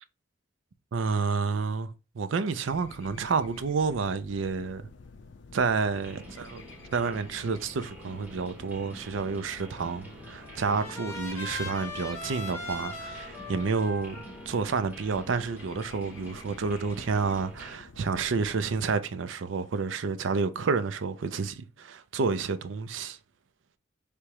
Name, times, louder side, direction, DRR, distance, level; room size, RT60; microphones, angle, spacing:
voice 1, 0.9-1.9 2.2-4.8 5.5-6.6 6.9-23.2, right 4 dB, 80° right, 0.5 m, -29 dB
sound 1, 2.7-18.8, left 4 dB, 65° left, 0.5 m, -50 dB
sound 2, 5.9-17.8, right 1 dB, 10° right, 0.9 m, -48 dB
Trumpet, 9.8-15.9, left 2 dB, 15° left, 1.1 m, -41 dB
3.4 x 3.0 x 4.7 m
head